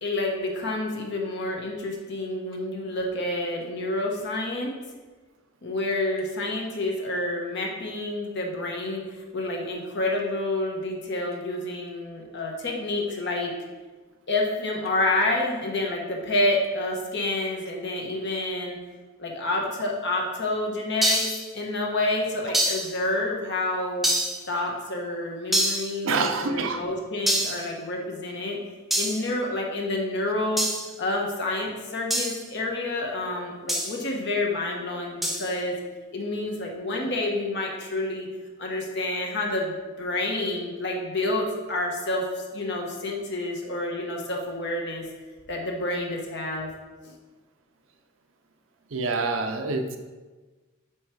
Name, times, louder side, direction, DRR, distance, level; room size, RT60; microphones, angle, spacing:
voice 1, 0.0-4.7 5.6-13.5 14.3-18.8 19.2-24.1 24.5-28.6 29.0-30.7 31.0-35.7 36.1-38.3 38.6-45.1 45.5-46.7 47.0-47.1, left 2 dB, 55° left, 0 dB, 1.1 m, -28 dB
sound 1, 21.0-21.5 22.5-22.9 24.0-24.4 25.5-25.9 27.3-27.6 28.9-29.2 30.6-30.9 32.1-32.4 33.7-34.0 35.2-35.5, equal, ahead, 0.5 m, -25 dB
voice 2, 26.0-26.8 48.9-50.0, right 3 dB, 65° right, 6 dB, 0.6 m, -26 dB
7.8 x 3.1 x 4.6 m, 1.3 s
head